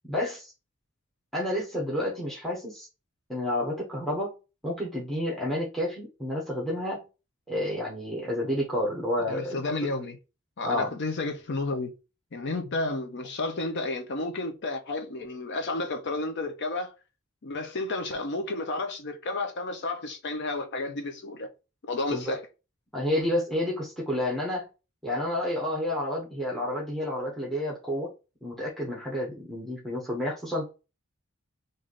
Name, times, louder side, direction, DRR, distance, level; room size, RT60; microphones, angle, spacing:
voice 1, 0.1-0.5 1.3-2.9 3.3-4.3 4.6-7.0 7.5-9.6 10.6-10.9 22.1-22.4 22.9-24.7 25.0-28.1 28.4-30.7, left 1 dB, ahead, 0.9 m, -30 dB
voice 2, 9.3-10.2 10.6-11.9 12.3-16.9 17.4-21.5 21.9-22.4, left 2 dB, 60° left, 0.6 m, -31 dB
3.2 x 2.6 x 3.8 m
head